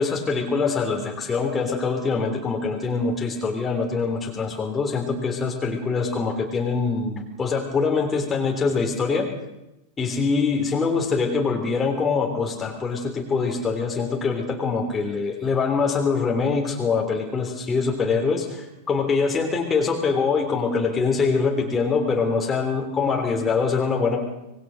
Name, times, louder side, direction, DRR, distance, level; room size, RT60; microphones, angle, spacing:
voice 1, 0.0-9.3 10.0-24.2, left 4 dB, 20° left, 1 dB, 3.5 m, -24 dB
25.5 x 21.0 x 6.6 m, 0.95 s
figure-of-eight pair, 90°, 0 cm